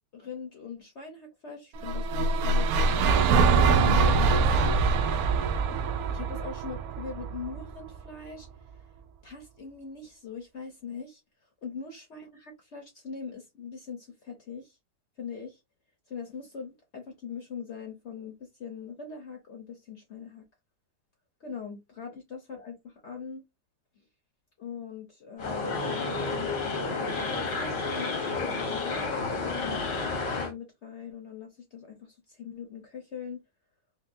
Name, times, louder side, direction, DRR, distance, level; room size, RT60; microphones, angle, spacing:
voice 1, 0.1-2.7 3.2-4.8 6.1-8.5 9.2-11.2 11.6-14.8 15.2-15.6 16.1-20.5 21.4-23.4 24.6-29.8 30.1-33.4, left 6 dB, 50° left, 0.9 m, -41 dB
sound 1, 1.8-8.0, right 4 dB, 70° right, 1.0 m, -24 dB
sound 2, 25.4-30.5, left 3 dB, 85° left, 1.9 m, -31 dB
5.2 x 2.2 x 2.6 m
omnidirectional pair, 1.8 m